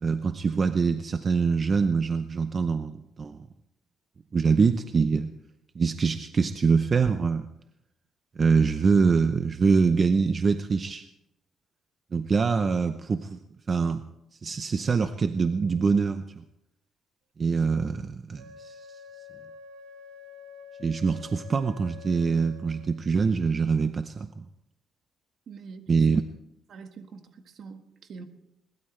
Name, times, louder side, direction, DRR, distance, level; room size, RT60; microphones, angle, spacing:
voice 1, 0.0-3.5 4.3-5.3 5.7-7.5 8.4-11.0 12.1-13.4 13.7-14.0 14.4-16.4 17.4-18.9 20.8-24.4 25.9-26.2, right 5 dB, 35° right, 9 dB, 0.7 m, -24 dB
Wind instrument woodwind instrument, 18.3-23.0, left 5 dB, 85° right, 1.3 m, -47 dB
voice 2, 25.5-26.0 26.7-28.2, right 5 dB, 55° right, 6 dB, 1.6 m, -45 dB
21.5 x 20.0 x 3.3 m, 0.84 s
cardioid pair, 135°, 0 cm